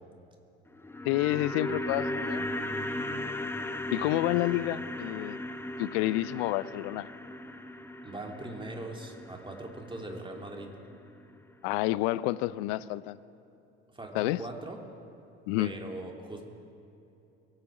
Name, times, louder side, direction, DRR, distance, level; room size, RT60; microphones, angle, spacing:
sound 1, 0.7-10.9 11.2-11.3, left 1 dB, 5° left, 0.8 m, -37 dB
voice 1, 1.0-2.5 3.9-5.4 5.8-7.1 11.6-13.2 14.1-14.4 15.5-15.7, left 17 dB, 65° left, 19 dB, 0.5 m, -29 dB
voice 2, 8.0-10.7 13.9-14.8 15.6-16.4, right 2 dB, 15° right, 1 dB, 2.6 m, -40 dB
23.0 x 9.0 x 5.0 m, 2.8 s
hypercardioid pair, 65°, 32 cm